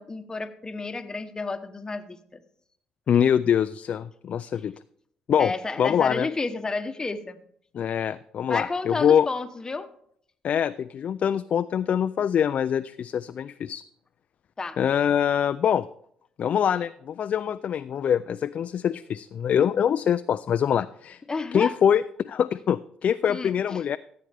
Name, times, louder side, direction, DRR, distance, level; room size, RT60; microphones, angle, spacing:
voice 1, 0.0-2.4 5.4-7.4 8.5-9.9 14.6-14.8 21.3-21.7 23.3-23.8, left 3 dB, 25° left, 9 dB, 1.0 m, -31 dB
voice 2, 3.1-4.7 5.3-5.5 5.8-6.3 7.7-9.3 10.4-13.8 14.8-15.9 16.4-21.2 21.5-24.0, left 8 dB, 55° left, 12 dB, 0.3 m, -24 dB
15.0 x 7.6 x 3.4 m, 0.67 s
supercardioid pair, 70°, 3 cm